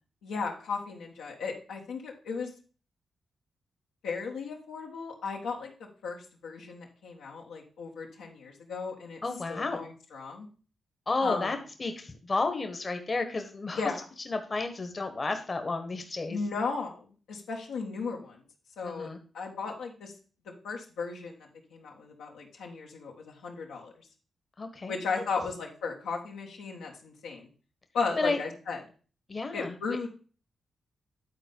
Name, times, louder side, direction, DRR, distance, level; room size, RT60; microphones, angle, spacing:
voice 1, 0.2-2.5 4.0-5.7 6.0-9.2 9.5-10.5 11.2-11.6 13.8-14.0 16.3-18.4 18.8-19.1 19.3-20.1 20.6-23.9 24.9-27.5 27.9-28.8 29.5-30.1, left 4 dB, 85° left, -1 dB, 1.5 m, -35 dB
voice 2, 9.2-9.8 11.1-13.8 14.2-16.4 18.8-19.2 24.6-24.9 28.2-28.4 29.3-30.0, left 3 dB, 40° left, 7 dB, 1.3 m, -32 dB
10.0 x 4.2 x 5.4 m, 0.39 s
supercardioid pair, 40°, 0 cm